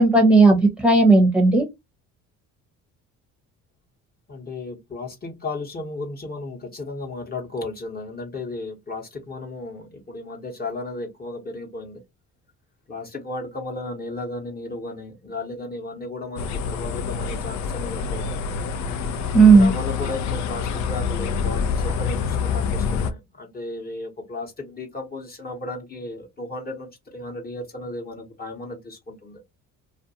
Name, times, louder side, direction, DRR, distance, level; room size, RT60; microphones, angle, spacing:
voice 1, 0.0-1.6 19.3-19.7, right 3 dB, 5° right, 0.8 m, -14 dB
voice 2, 4.3-12.0 12.9-18.6 19.5-29.4, left 2 dB, 30° left, 1.0 m, -34 dB
sound 1, 16.4-23.1, left 6 dB, 60° left, 0.5 m, -26 dB
2.5 x 2.2 x 2.7 m
supercardioid pair, 85°, 33 cm